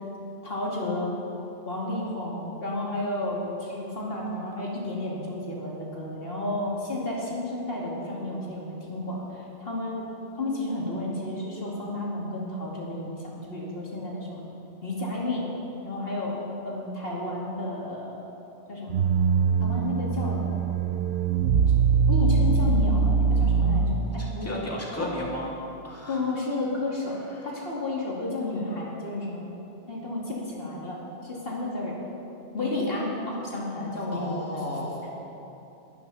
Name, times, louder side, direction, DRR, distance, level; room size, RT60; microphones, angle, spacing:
voice 1, 0.4-1.1 1.7-10.0 10.4-14.4 14.8-15.5 15.8-18.2 18.7-18.9 19.6-20.4 22.1-24.6 25.0-25.1 26.1-29.4 29.9-31.9 32.5-34.5, left 2 dB, 65° left, -4 dB, 2.7 m, -32 dB
sound 1, 18.9-24.3, right 5 dB, 80° right, 1.0 m, -23 dB
voice 2, 24.0-25.5 25.8-26.2 27.4-27.5 34.1-35.3, left 1 dB, 15° left, -4 dB, 2.3 m, -34 dB
20.5 x 12.5 x 4.2 m, 2.9 s
omnidirectional pair, 1.1 m